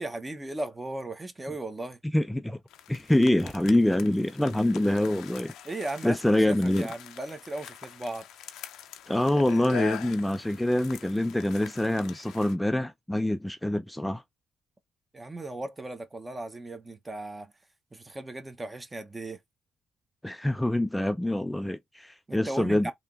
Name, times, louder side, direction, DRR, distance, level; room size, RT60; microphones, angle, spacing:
voice 1, 0.0-2.0 5.6-8.3 15.1-17.5 17.9-19.4 22.3-22.9, right 2 dB, 20° right, 0.9 m, -36 dB
voice 2, 2.1-2.6 2.9-5.5 6.0-6.9 9.1-14.2 20.2-22.9, left 1 dB, 5° left, 0.4 m, -25 dB
sound 1, 2.7-12.5, left 11 dB, 85° left, 0.5 m, -44 dB
3.4 x 2.9 x 3.7 m
cardioid pair, 90°, 0 cm